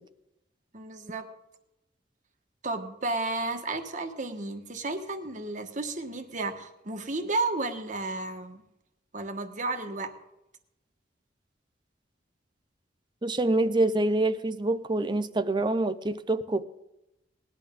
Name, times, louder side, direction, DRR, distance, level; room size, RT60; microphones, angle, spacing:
voice 1, 0.7-1.3 2.6-8.6 9.1-10.1, right 2 dB, 45° right, 1.3 m, -32 dB
voice 2, 13.2-16.6, right 2 dB, 25° right, 0.6 m, -26 dB
19.0 x 11.0 x 3.7 m
head